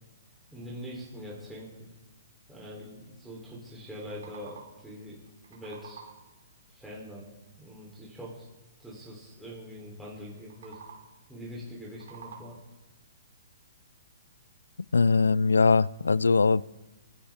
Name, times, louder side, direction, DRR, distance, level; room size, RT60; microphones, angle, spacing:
voice 1, 0.5-1.9 2.5-5.2 5.5-6.0 6.7-7.2 7.6-8.5 8.8-10.8 11.3-12.6, equal, ahead, 3.3 m, -43 dB
sound 1, 3.8-4.9 5.3-6.4 10.4-11.3 11.7-12.8, right 5 dB, 70° right, 2.7 m, -50 dB
voice 2, 14.9-16.6, left 4 dB, 90° left, 0.3 m, -21 dB
24.0 x 9.7 x 3.5 m
hypercardioid pair, 135°, 0 cm